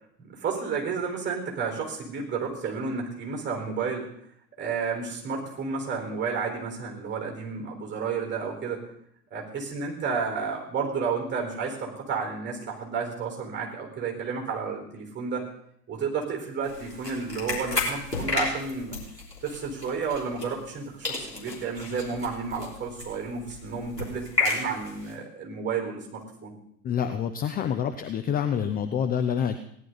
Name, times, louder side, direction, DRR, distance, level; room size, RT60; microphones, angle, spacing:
voice 1, 0.2-4.1 4.6-8.8 9.3-15.4 15.9-19.0 19.4-26.5, right 5 dB, 20° right, 1 dB, 4.5 m, -31 dB
sound 1, 16.6-20.8 21.0-25.1, left 3 dB, 90° left, 3.2 m, -33 dB
voice 2, 26.8-29.6, left 8 dB, 20° left, 8 dB, 0.6 m, -27 dB
17.5 x 11.0 x 4.0 m, 0.69 s
figure-of-eight pair, 85°, 48 cm